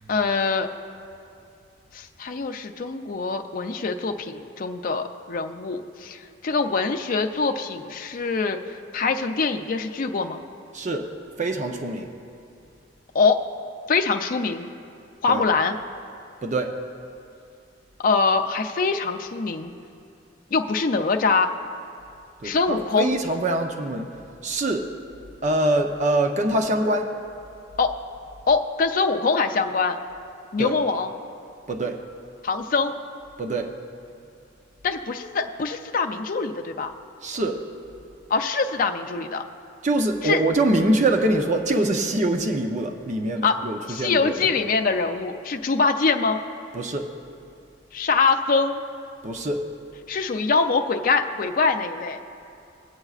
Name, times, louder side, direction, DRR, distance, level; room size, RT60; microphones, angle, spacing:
voice 1, 0.1-0.7 1.9-10.4 13.1-13.4 13.9-14.7 15.2-15.8 18.0-19.7 20.5-21.5 22.4-23.1 27.8-27.9 28.5-30.0 30.5-31.1 32.4-32.9 34.8-36.9 38.3-39.4 40.2-40.4 43.4-43.6 43.9-46.4 47.9-48.8 50.1-52.2, left 4 dB, 50° left, 5 dB, 0.5 m, -23 dB
voice 2, 10.7-11.1 11.4-12.1 15.3-15.4 16.4-16.7 22.4-24.1 24.4-24.9 25.4-27.1 30.6-30.8 31.7-32.0 33.4-33.7 37.2-37.6 39.8-44.6 46.7-47.1 49.2-49.6, right 1 dB, 40° right, 3 dB, 0.6 m, -24 dB
21.0 x 7.9 x 2.4 m, 2.5 s
head